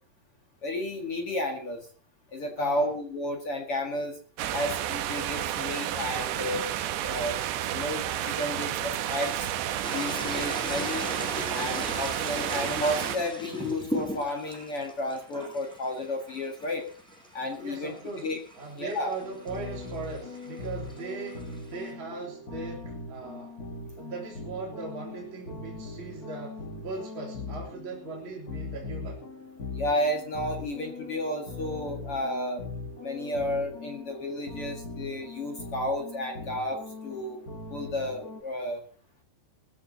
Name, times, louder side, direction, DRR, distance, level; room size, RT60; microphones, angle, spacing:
voice 1, 0.6-1.9 2.3-4.2 4.5-6.7 7.0-7.4 7.7-9.5 9.9-11.1 11.5-16.9 17.3-17.9 18.2-18.4 18.8-19.1 29.7-32.6 33.0-37.4 37.7-38.8, left 1 dB, 45° left, 3 dB, 2.1 m, -32 dB
voice 2, 2.6-2.9 17.6-23.6 24.0-29.2, right 3 dB, 30° right, -3 dB, 3.5 m, -39 dB
sound 1, 4.4-13.2, right 12 dB, 75° right, 3.2 m, -31 dB
sound 2, 9.8-21.9, equal, ahead, 6.0 m, -39 dB
sound 3, 19.2-38.4, left 3 dB, 90° left, 0.8 m, -41 dB
21.0 x 14.5 x 2.9 m, 0.41 s
omnidirectional pair, 5.2 m